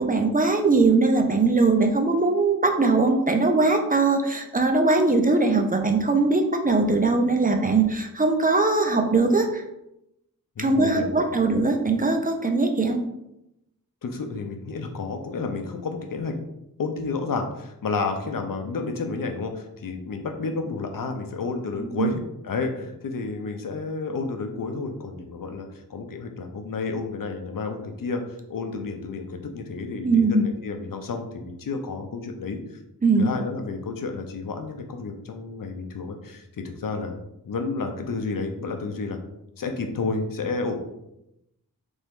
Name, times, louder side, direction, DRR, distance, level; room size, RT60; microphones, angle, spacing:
voice 1, 0.0-9.6 10.6-13.0 22.0-22.1 30.0-30.5 33.0-33.3, right 3 dB, 25° right, 4 dB, 0.6 m, -21 dB
voice 2, 10.6-11.4 14.0-16.3 16.8-32.6 33.2-39.2 39.6-40.8, left 4 dB, 70° left, 5 dB, 0.7 m, -31 dB
3.9 x 3.5 x 3.6 m, 0.85 s
wide cardioid pair, 65°, 34 cm